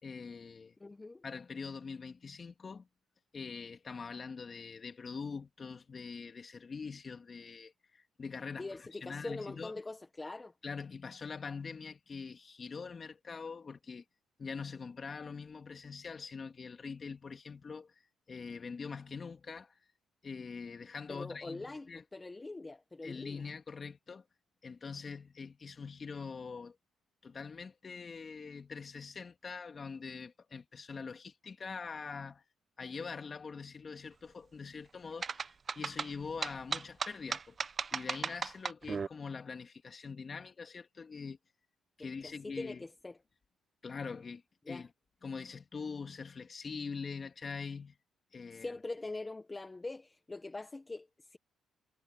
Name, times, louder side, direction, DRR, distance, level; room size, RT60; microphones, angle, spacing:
voice 1, 0.0-0.7 1.2-2.9 3.3-9.7 10.6-14.0 14.4-17.9 18.3-19.8 20.2-22.0 23.0-24.2 24.6-26.8 27.2-32.4 32.8-37.6 37.9-41.4 42.0-42.8 43.8-44.9 45.2-48.0 48.3-48.7, left 5 dB, 40° left, 2.5 m, -43 dB
voice 2, 0.8-1.2 8.6-10.5 21.1-23.5 42.0-43.2 44.6-44.9 48.5-51.4, left 2 dB, 20° left, 1.5 m, -43 dB
sound 1, 35.2-39.1, right 5 dB, 40° right, 1.0 m, -36 dB
cardioid pair, 90°, 0 cm